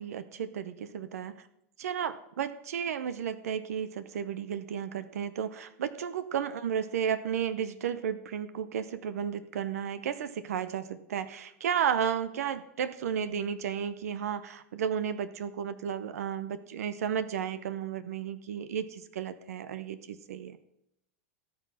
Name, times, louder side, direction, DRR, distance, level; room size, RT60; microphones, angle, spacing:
voice 1, 0.0-1.5 1.8-20.6, right 8 dB, 85° right, 13 dB, 0.8 m, -33 dB
17.5 x 6.4 x 5.6 m, 0.84 s
hypercardioid pair, 120°, 8 cm